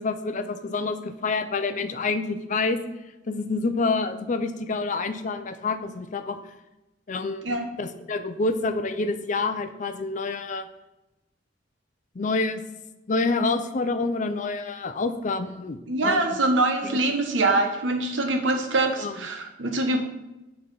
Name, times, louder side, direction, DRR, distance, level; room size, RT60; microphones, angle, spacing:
voice 1, 0.0-2.8 3.3-6.4 7.1-7.5 7.8-10.7 12.1-12.6 13.1-16.4 16.8-17.0 19.0-19.2, left 3 dB, 40° left, 9 dB, 0.5 m, -27 dB
voice 2, 15.9-20.0, right 2 dB, 80° right, 4 dB, 1.1 m, -24 dB
8.2 x 3.3 x 5.4 m, 0.99 s
head